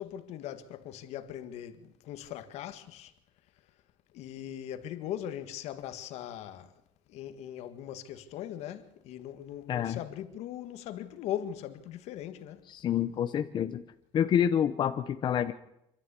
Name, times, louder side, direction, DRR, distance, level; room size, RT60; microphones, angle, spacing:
voice 1, 0.0-3.1 4.1-6.7 7.1-12.6, left 11 dB, 70° left, 1.8 m, -40 dB
voice 2, 9.7-10.0 12.7-13.8 14.1-15.5, left 9 dB, 40° left, 0.9 m, -28 dB
26.0 x 13.0 x 8.4 m
cardioid pair, 155°, 11 cm